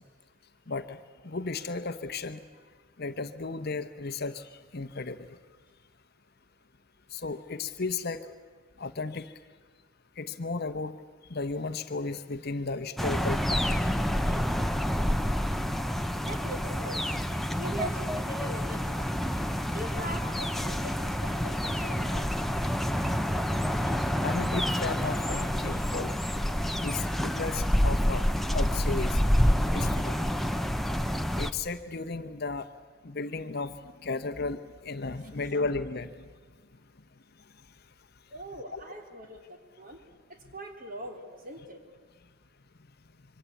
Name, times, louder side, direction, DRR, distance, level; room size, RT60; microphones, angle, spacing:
voice 1, 0.7-1.0 1.2-2.4 3.0-5.4 7.1-8.3 8.8-9.3 10.2-11.0 11.3-13.8 23.3-23.6 24.2-26.2 26.8-29.2 29.7-30.2 31.3-32.7 33.0-33.8 34.0-36.1 38.7-38.8, left 3 dB, 45° left, 10 dB, 0.9 m, -34 dB
sound 1, 13.0-31.5, equal, ahead, 0.8 m, -28 dB
voice 2, 16.1-17.2 17.6-19.2 19.7-22.2 38.3-40.0 40.3-41.8, right 1 dB, 40° right, 4 dB, 3.2 m, -41 dB
26.0 x 24.0 x 8.4 m, 1.5 s
head